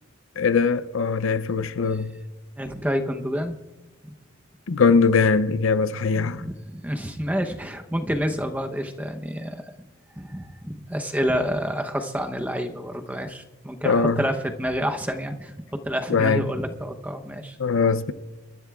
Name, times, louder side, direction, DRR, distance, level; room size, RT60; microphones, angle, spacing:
voice 1, 0.4-2.1 4.7-6.4 13.8-14.2 16.1-16.4 17.6-18.1, left 5 dB, 70° left, 0.5 m, -21 dB
voice 2, 2.6-3.6 4.0-4.1 6.1-9.7 10.2-17.6, equal, 5° right, 0.8 m, -28 dB
28.0 x 13.5 x 2.4 m
head